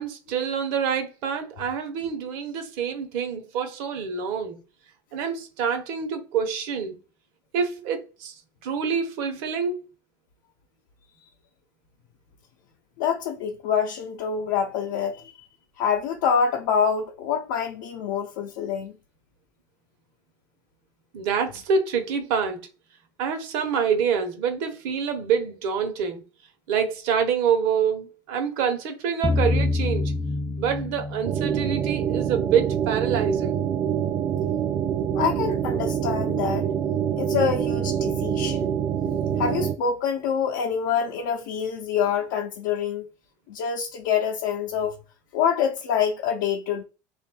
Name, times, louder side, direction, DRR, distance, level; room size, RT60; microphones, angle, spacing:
voice 1, 0.0-4.6 5.1-7.0 7.5-8.3 8.6-9.8 21.1-22.6 23.2-26.2 26.7-30.1 30.6-33.6, right 6 dB, 70° right, 0.9 m, -26 dB
voice 2, 13.0-15.3 15.8-18.9 35.1-36.7 37.2-38.7 39.1-43.1 43.5-44.9 45.3-46.8, left 7 dB, 80° left, 0.6 m, -26 dB
sound 1, 29.2-32.3, left 2 dB, 15° left, 0.3 m, -27 dB
sound 2, 31.2-39.8, right 9 dB, 45° right, 0.5 m, -26 dB
3.3 x 2.5 x 4.4 m
supercardioid pair, 100°, 10 cm